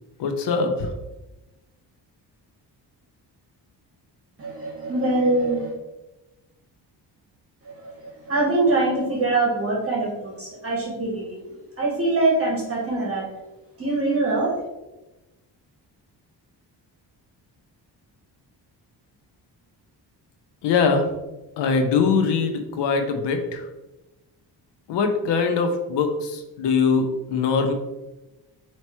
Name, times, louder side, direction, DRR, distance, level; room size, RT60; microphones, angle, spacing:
voice 1, 0.2-0.9 20.6-21.0 21.6-23.7 24.9-27.7, left 5 dB, 90° left, 6 dB, 0.6 m, -22 dB
voice 2, 4.4-5.7 8.2-11.4 11.8-13.3 13.8-14.5, right 2 dB, 35° right, -3 dB, 1.0 m, -23 dB
4.4 x 2.9 x 3.0 m, 1.0 s
cardioid pair, 110°, 41 cm